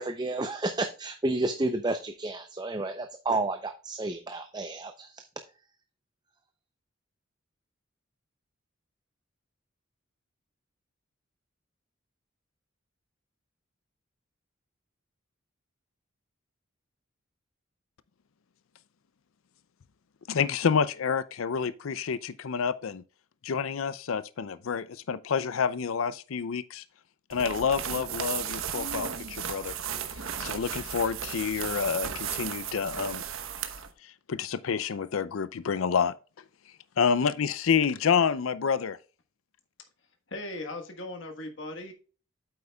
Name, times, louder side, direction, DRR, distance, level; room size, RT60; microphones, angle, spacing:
voice 1, 0.0-5.1, right 2 dB, 20° right, 0.5 m, -31 dB
voice 2, 20.3-23.0 23.4-26.8 27.3-33.2 34.0-39.0, left 6 dB, 80° left, 0.5 m, -29 dB
sound 1, 27.3-33.9, right 8 dB, 80° right, 1.0 m, -35 dB
voice 3, 40.3-41.9, left 2 dB, 60° left, 1.4 m, -38 dB
8.6 x 8.0 x 2.3 m
head